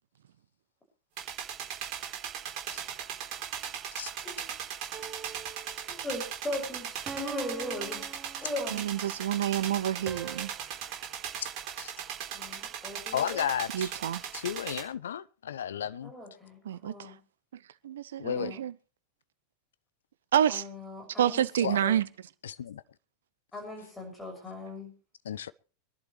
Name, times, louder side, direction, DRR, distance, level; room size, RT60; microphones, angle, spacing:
sound 1, 1.2-14.8, right 9 dB, 40° right, 4.0 m, -38 dB
voice 1, 4.2-4.6 5.8-8.0 8.4-8.9 12.3-13.4 16.0-17.2 18.3-18.6 20.5-21.9 23.5-24.9, left 1 dB, 10° left, 6.4 m, -39 dB
sound 2, 4.9-5.9 7.1-9.0 10.1-10.5, right 5 dB, 20° right, 1.2 m, -43 dB
voice 2, 8.7-10.5 13.7-14.2 16.6-17.1 17.8-18.7 20.3-20.6 21.2-22.1, right 10 dB, 60° right, 0.6 m, -28 dB
voice 3, 13.1-13.9 14.3-16.1 18.2-18.5 21.6-21.8 22.4-22.8 25.2-25.5, left 9 dB, 65° left, 0.6 m, -33 dB
24.5 x 11.5 x 3.2 m
figure-of-eight pair, 90°, 0 cm